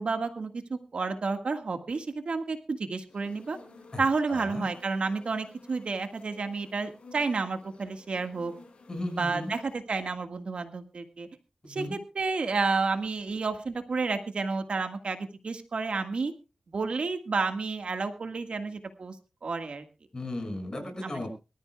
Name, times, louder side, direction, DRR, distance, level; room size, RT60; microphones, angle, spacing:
voice 1, 0.0-3.6 4.0-8.5 9.2-11.3 11.7-16.3 16.7-19.1 19.4-19.8 21.0-21.2, right 4 dB, 65° right, 7 dB, 1.7 m, -31 dB
sound 1, 3.1-9.7, left 3 dB, 65° left, 5.1 m, -54 dB
voice 2, 4.3-4.7 8.9-9.5 11.6-12.0 20.1-21.3, left 1 dB, 35° left, 3 dB, 6.6 m, -35 dB
24.0 x 13.5 x 2.3 m, 0.30 s
wide cardioid pair, 90°, 2 cm